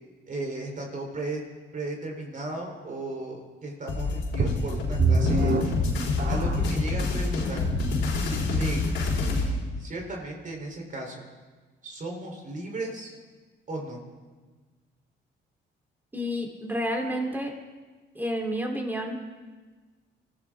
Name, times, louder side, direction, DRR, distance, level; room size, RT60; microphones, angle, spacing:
voice 1, 0.3-1.4 1.7-5.8 6.2-7.8 8.2-11.2 11.8-13.2 13.7-14.0, right 2 dB, 40° right, 1 dB, 3.9 m, -36 dB
sound 1, 3.9-9.5, left 3 dB, 80° left, 3.9 m, -27 dB
sound 2, 4.4-6.8 7.5-7.6 8.2-8.3, right 2 dB, 60° right, 2.3 m, -25 dB
voice 2, 16.1-17.5 18.2-19.2, equal, 10° right, 1 dB, 3.6 m, -30 dB
25.5 x 15.0 x 3.8 m, 1.3 s
cardioid pair, 90°, 20 cm